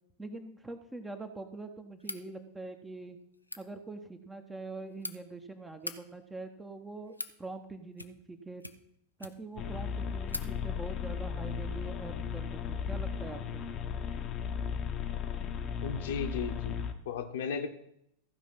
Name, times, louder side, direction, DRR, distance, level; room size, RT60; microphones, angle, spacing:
voice 1, 0.2-3.2 3.6-7.1 7.4-8.6 9.2-13.6, right 2 dB, 10° right, 7 dB, 1.1 m, -44 dB
sound 1, 2.0-2.3 3.3-3.6 4.6-5.1 5.7-6.0 6.8-7.4 7.9-8.3 8.6-9.6 9.9-10.0 10.3-10.5, left 1 dB, 85° left, 0.6 m, -41 dB
sound 2, 9.6-16.9, left 7 dB, 30° left, 0.9 m, -36 dB
voice 2, 15.8-17.7, left 6 dB, 55° left, 5 dB, 1.1 m, -35 dB
15.0 x 5.2 x 5.6 m, 0.75 s
figure-of-eight pair, 90°, 0 cm